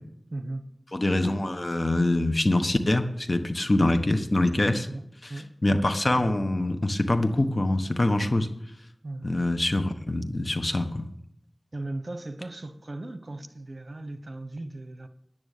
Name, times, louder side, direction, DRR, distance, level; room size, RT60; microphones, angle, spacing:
voice 1, 0.3-0.6 4.9-5.6 9.0-9.3 11.7-15.1, right 2 dB, 55° right, 1.1 m, -37 dB
voice 2, 0.9-4.9 5.2-5.3 5.6-8.5 9.2-11.1, left 1 dB, 50° left, 1.1 m, -24 dB
10.5 x 9.3 x 6.6 m
wide cardioid pair, 40°, 0 cm